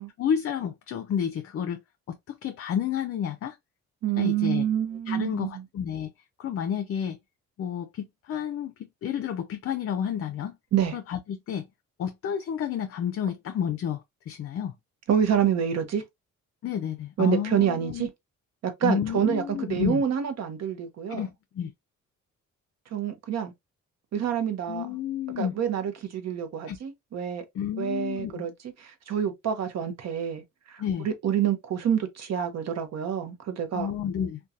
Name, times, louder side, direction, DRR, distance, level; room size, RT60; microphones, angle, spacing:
voice 1, 0.2-1.8 2.1-3.6 4.2-4.6 5.1-6.1 6.4-7.2 7.6-10.6 10.9-11.7 12.0-14.7 16.6-18.1 18.8-20.0 21.1-21.7 24.7-25.5 26.7-26.8 27.6-28.5 30.8-31.1 33.7-34.4, left 8 dB, 50° left, 0.4 m, -30 dB
voice 2, 4.0-5.6 10.7-11.0 15.1-16.0 17.2-18.1 18.6-21.3 22.9-23.5 24.1-24.9 25.4-27.4 27.8-28.5 28.8-33.9, right 9 dB, 60° right, 0.7 m, -27 dB
2.7 x 2.2 x 2.3 m
cardioid pair, 90°, 30 cm